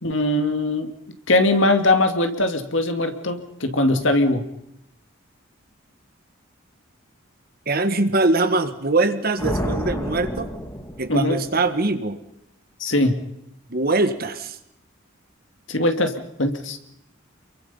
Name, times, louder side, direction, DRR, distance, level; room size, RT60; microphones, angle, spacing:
voice 1, 0.0-0.9 1.3-4.4 11.1-11.4 12.8-13.2 15.7-16.8, left 2 dB, 65° left, 7 dB, 2.4 m, -21 dB
voice 2, 7.7-10.5 11.0-12.2 13.7-14.6, right 2 dB, 45° right, 9 dB, 1.8 m, -22 dB
sound 1, 9.4-11.7, equal, 15° left, 2.5 m, -29 dB
29.0 x 23.0 x 5.6 m, 0.79 s
head